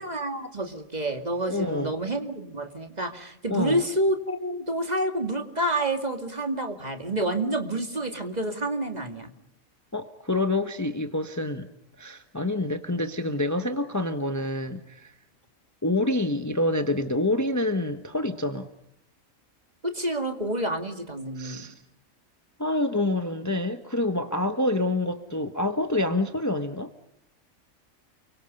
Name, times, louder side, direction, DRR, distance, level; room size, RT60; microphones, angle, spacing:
voice 1, 0.0-9.3 19.8-21.7, right 1 dB, 30° right, 6 dB, 2.3 m, -28 dB
voice 2, 1.5-1.9 3.5-3.8 9.9-11.7 12.0-15.1 15.8-18.7 21.4-21.7 22.6-26.9, left 2 dB, 15° left, 7 dB, 1.2 m, -27 dB
30.0 x 24.0 x 5.3 m, 0.77 s
omnidirectional pair, 1.5 m